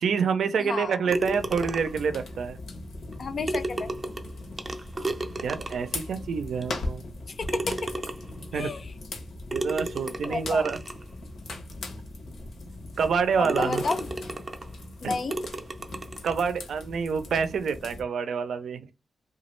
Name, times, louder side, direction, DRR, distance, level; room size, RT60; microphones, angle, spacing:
voice 1, 0.0-2.6 5.4-7.0 8.5-8.7 9.5-10.8 13.0-13.8 15.0-15.2 16.2-18.9, right 6 dB, 85° right, 0.4 m, -27 dB
voice 2, 0.6-1.0 3.2-3.9 7.3-7.9 8.5-8.9 10.2-10.7 13.4-14.1 15.0-15.4, left 3 dB, 45° left, 0.4 m, -31 dB
sound 1, 1.1-18.0, left 2 dB, 75° left, 0.8 m, -39 dB
sound 2, 1.1-2.1 3.1-3.2 3.5-6.0 6.6-6.7 7.5-8.4 9.5-11.0 11.7-11.8 12.3-12.4 13.0-13.1 13.4-14.7 15.3-16.4, right 2 dB, 25° right, 0.5 m, -33 dB
3.0 x 2.3 x 3.1 m
wide cardioid pair, 145°, 0 cm